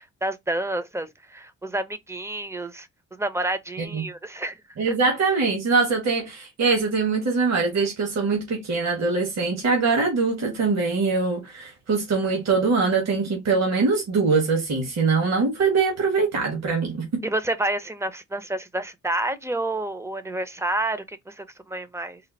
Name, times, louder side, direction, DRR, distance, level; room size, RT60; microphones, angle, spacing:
voice 1, 0.0-4.6 4.9-5.0 17.2-22.2, right 1 dB, 10° right, 0.6 m, -29 dB
voice 2, 4.8-17.2, right 4 dB, 60° right, 1.6 m, -23 dB
4.2 x 2.0 x 3.9 m
cardioid pair, 90°, 30 cm